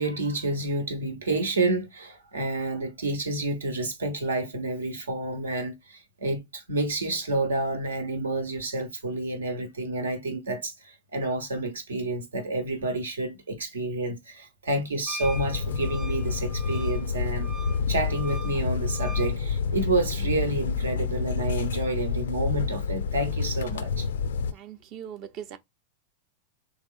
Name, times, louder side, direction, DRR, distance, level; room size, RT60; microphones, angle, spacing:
voice 1, 0.0-17.5 17.9-24.1, right 2 dB, 85° right, 0.9 m, -29 dB
Wind instrument woodwind instrument, 15.1-19.3, right 2 dB, ahead, 0.4 m, -42 dB
sound 1, 15.2-24.5, left 6 dB, 75° left, 0.3 m, -29 dB
voice 2, 24.5-25.6, right 9 dB, 45° right, 0.6 m, -40 dB
3.4 x 2.9 x 2.3 m
hypercardioid pair, 95°, 0 cm